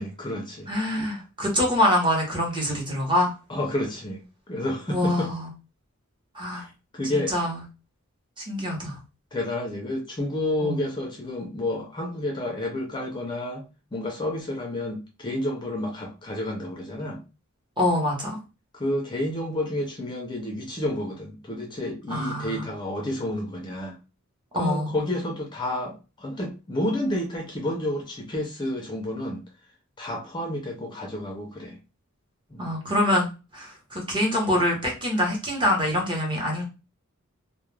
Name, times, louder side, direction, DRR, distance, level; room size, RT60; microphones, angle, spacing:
voice 1, 0.0-0.7 3.5-5.3 6.5-6.7 6.9-7.3 9.3-13.6 13.9-17.2 18.7-24.0 24.6-29.4 30.0-31.8 32.5-32.7, left 1 dB, 20° left, 0.4 m, -30 dB
voice 2, 0.7-3.3 4.9-5.5 6.3-6.7 7.1-7.6 8.4-9.0 10.6-10.8 17.8-18.4 22.1-22.7 24.5-25.0 32.6-36.6, left 1 dB, 25° right, 0.8 m, -25 dB
2.3 x 2.1 x 3.1 m
head